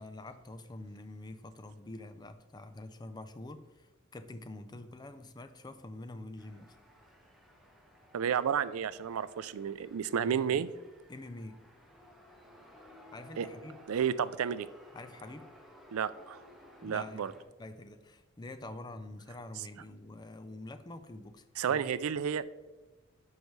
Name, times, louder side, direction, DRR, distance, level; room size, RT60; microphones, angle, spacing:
voice 1, 0.0-6.8 10.3-10.7 11.1-11.6 13.1-13.8 14.9-15.5 16.8-21.9, left 2 dB, 20° left, 10 dB, 0.4 m, -46 dB
sound 1, 6.4-17.4, equal, ahead, 0.9 m, -57 dB
voice 2, 8.1-10.7 13.4-13.5 13.9-14.7 15.9-16.4 16.8-17.3 21.6-22.4, right 8 dB, 85° right, 15 dB, 0.4 m, -31 dB
11.5 x 4.7 x 3.1 m, 1.2 s
head